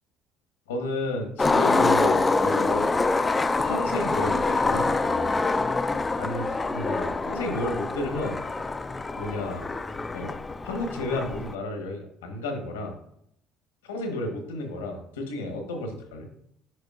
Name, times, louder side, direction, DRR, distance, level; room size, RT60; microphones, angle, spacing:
voice 1, 0.7-3.0 3.6-4.9 6.1-8.4 9.2-9.7 10.1-10.4 10.6-12.9 13.8-16.3, left 1 dB, 85° left, 4 dB, 1.1 m, -32 dB
Skateboard, 1.4-11.5, left 3 dB, 20° left, 0.4 m, -25 dB
7.7 x 5.1 x 2.4 m, 0.73 s
hypercardioid pair, 60°, 0 cm